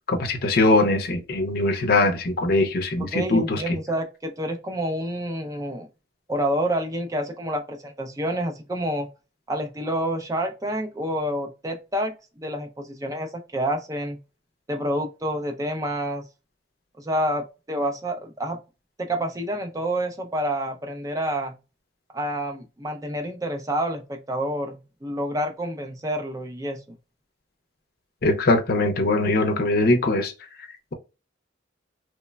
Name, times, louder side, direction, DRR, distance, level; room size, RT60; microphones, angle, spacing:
voice 1, 0.1-3.6 28.2-30.3, left 2 dB, 50° left, 0.5 m, -21 dB
voice 2, 3.1-5.9 6.3-9.1 9.5-14.2 14.7-16.2 17.0-18.6 19.0-21.5 22.1-26.8, right 1 dB, 15° right, 0.4 m, -28 dB
3.0 x 2.1 x 2.2 m
head